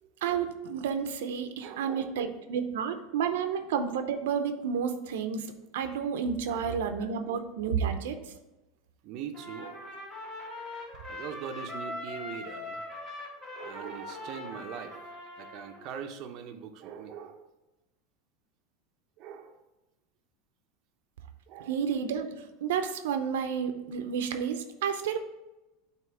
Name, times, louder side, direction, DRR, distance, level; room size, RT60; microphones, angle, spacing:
voice 1, 0.2-8.3 21.7-25.2, right 7 dB, 85° right, 7 dB, 0.6 m, -31 dB
voice 2, 1.6-2.1 6.5-7.0 9.0-10.0 11.1-12.8 13.5-17.5 19.2-19.6 21.5-21.8, right 7 dB, 45° right, 5 dB, 0.6 m, -42 dB
Trumpet, 9.3-15.9, left 1 dB, 15° left, 1.7 m, -41 dB
7.6 x 3.0 x 4.8 m, 1.0 s
supercardioid pair, 140°, 0 cm